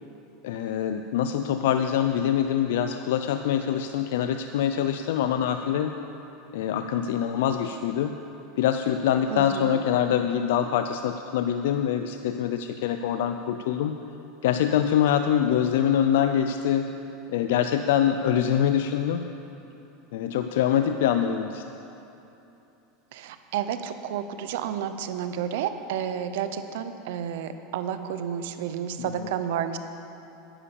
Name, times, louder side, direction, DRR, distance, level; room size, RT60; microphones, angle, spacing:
voice 1, 0.4-5.9 6.5-8.1 8.6-14.0 14.4-17.0 17.3-19.2 20.1-21.6 29.0-29.3, left 9 dB, 80° left, 8 dB, 0.4 m, -24 dB
voice 2, 9.3-9.8 23.1-29.8, right 9 dB, 75° right, 10 dB, 0.8 m, -31 dB
10.0 x 10.0 x 7.0 m, 2.9 s
supercardioid pair, 130°, 0 cm